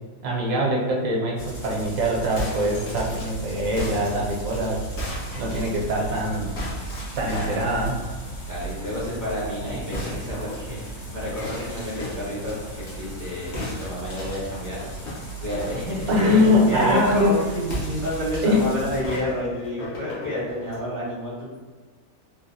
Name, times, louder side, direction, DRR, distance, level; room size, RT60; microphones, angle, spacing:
voice 1, 0.2-5.0 5.4-6.5 7.2-8.0 16.1-18.1 18.4-18.7, left 1 dB, 80° right, -2 dB, 1.2 m, -23 dB
sound 1, 1.4-19.0, right 3 dB, 85° left, 1.4 m, -36 dB
sound 2, 2.3-6.2 6.6-7.7 9.9-12.9 13.5-16.4 17.6-18.6 19.0-20.8, left 1 dB, 55° left, 1.2 m, -36 dB
voice 2, 7.3-7.8 8.5-14.9 15.4-17.4 18.0-21.6, left 1 dB, 20° left, -7 dB, 0.6 m, -30 dB
3.7 x 2.4 x 2.6 m, 1.4 s
omnidirectional pair, 1.4 m